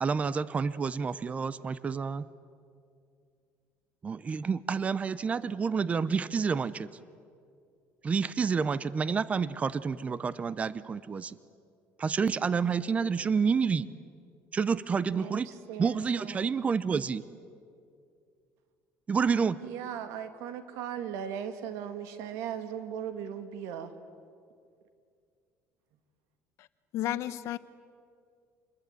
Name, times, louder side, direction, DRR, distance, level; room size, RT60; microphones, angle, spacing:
voice 1, 0.0-2.3 4.0-6.9 8.0-11.4 12.0-13.9 14.5-15.5 15.8-17.2 19.1-19.6, right 5 dB, 25° right, 0.8 m, -29 dB
voice 2, 15.1-15.4 15.7-16.5 19.6-23.9, right 9 dB, 80° right, 2.3 m, -38 dB
voice 3, 26.9-27.6, left 13 dB, 65° left, 1.0 m, -32 dB
27.5 x 21.0 x 9.2 m
cardioid pair, 125°, 5 cm